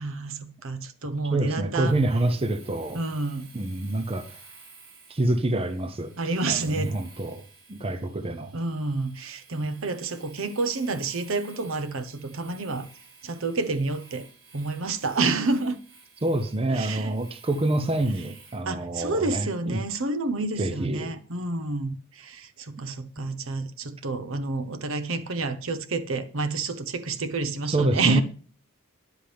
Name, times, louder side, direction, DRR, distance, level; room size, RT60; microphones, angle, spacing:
voice 1, 0.0-1.9 2.9-3.5 6.2-6.9 8.5-12.9 13.2-14.3 14.5-15.8 16.7-17.1 18.7-28.2, right 3 dB, 65° right, 0.9 m, -29 dB
voice 2, 1.2-3.0 3.5-4.4 5.1-6.1 6.5-7.4 7.7-8.5 16.2-19.8 20.6-21.1 27.7-28.2, right 2 dB, 25° right, 0.6 m, -27 dB
Domestic sounds home sounds, 1.9-18.7, right 4 dB, 80° right, 5.3 m, -53 dB
13.0 x 10.0 x 3.4 m
head